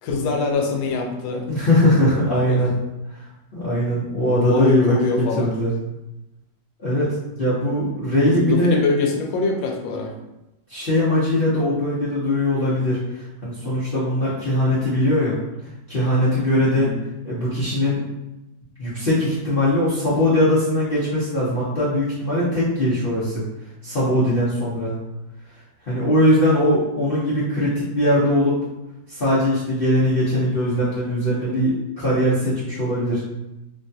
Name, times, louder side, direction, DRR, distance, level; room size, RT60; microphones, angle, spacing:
voice 1, 0.0-1.5 2.5-2.6 4.2-5.5 8.2-10.1 16.7-17.0, left 3 dB, 85° left, 2 dB, 1.3 m, -23 dB
voice 2, 1.5-2.7 3.5-5.7 6.8-8.8 10.7-15.4 15.9-16.9 17.2-18.0 18.8-23.4 23.8-25.0 25.9-28.6 29.1-33.2, left 1 dB, 60° left, -11 dB, 0.5 m, -20 dB
3.2 x 2.2 x 2.6 m, 0.96 s
omnidirectional pair, 2.0 m